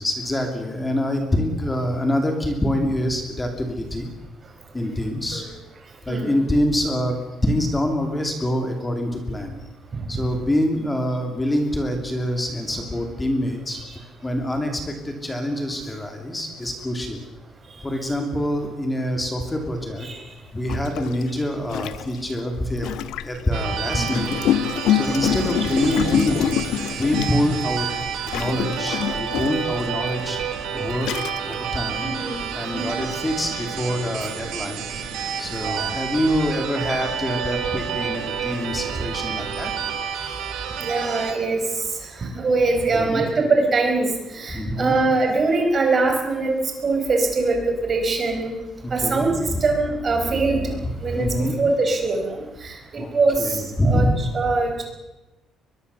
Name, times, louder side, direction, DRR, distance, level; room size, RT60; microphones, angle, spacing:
voice 1, 0.0-4.1 4.7-5.4 6.0-7.2 7.4-9.7 10.1-13.8 14.2-17.2 17.8-20.1 20.5-23.0 23.2-24.4 24.9-26.6 27.0-27.9 28.3-30.4 30.7-31.1 31.5-32.1 32.5-34.8 35.4-39.7 40.2-40.3 42.9-43.3 44.5-45.0 48.8-49.6 50.8-51.6 53.0-54.2, equal, 10° left, 4 dB, 2.6 m, -25 dB
Gurgling, 19.8-19.9 20.7-23.4 24.1-27.7 28.3-29.8 30.4-30.5 30.9-31.6, left 11 dB, 75° left, 1.0 m, -26 dB
sound 1, 23.5-41.3, right 8 dB, 75° right, 3.6 m, -30 dB
sound 2, 24.2-40.0, right 5 dB, 55° right, 5.6 m, -39 dB
voice 2, 32.0-32.4 32.7-33.0 35.6-35.9 40.8-46.5 46.8-48.5 48.9-54.1 54.3-54.8, right 3 dB, 25° right, 3 dB, 4.5 m, -23 dB
22.5 x 22.0 x 6.9 m, 1.0 s
cardioid pair, 180°, 0 cm